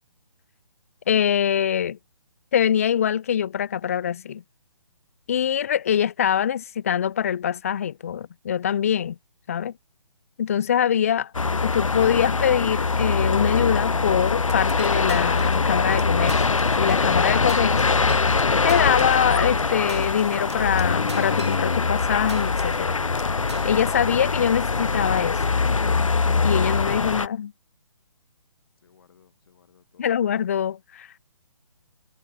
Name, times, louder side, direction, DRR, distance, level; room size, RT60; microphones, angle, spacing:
voice 1, 1.1-2.0 2.5-4.4 5.3-9.2 9.5-9.7 10.4-11.3 11.6-18.0 18.6-23.0 23.6-25.4 26.4-27.5 30.0-31.1, left 9 dB, 25° left, 0.4 m, -24 dB
sound 1, 11.3-27.3, left 4 dB, 70° left, 0.7 m, -23 dB
sound 2, 14.5-15.7 16.0-16.1 16.3-17.2 17.5-22.0 22.3-22.9 23.2-24.0, right 5 dB, 55° right, 6.6 m, -44 dB
voice 2, 28.8-30.2, left 7 dB, 45° left, 6.5 m, -59 dB
figure-of-eight pair, 140°, 17 cm